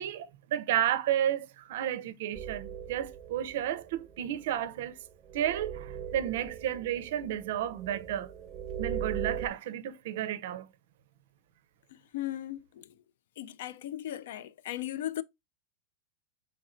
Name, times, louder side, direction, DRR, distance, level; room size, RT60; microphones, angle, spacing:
voice 1, 0.0-5.0 5.3-8.3 8.8-10.7, right 11 dB, 70° right, 0.4 m, -32 dB
sound 1, 2.3-9.5, right 8 dB, 20° right, 0.6 m, -40 dB
voice 2, 12.1-12.9 13.4-15.2, left 12 dB, 75° left, 0.3 m, -37 dB
4.2 x 3.2 x 2.4 m
supercardioid pair, 150°, 0 cm